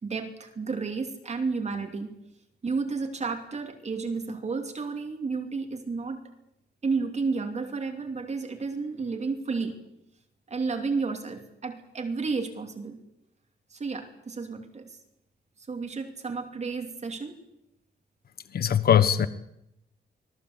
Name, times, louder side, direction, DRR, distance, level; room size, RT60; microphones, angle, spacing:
voice 1, 0.0-2.1 2.6-6.2 6.8-9.8 10.5-13.0 13.7-15.0 15.6-17.3, right 4 dB, 40° right, 5 dB, 2.8 m, -32 dB
voice 2, 18.5-19.3, left 9 dB, 55° left, 13 dB, 1.3 m, -21 dB
25.5 x 18.5 x 8.1 m, 0.84 s
cardioid pair, 125°, 18 cm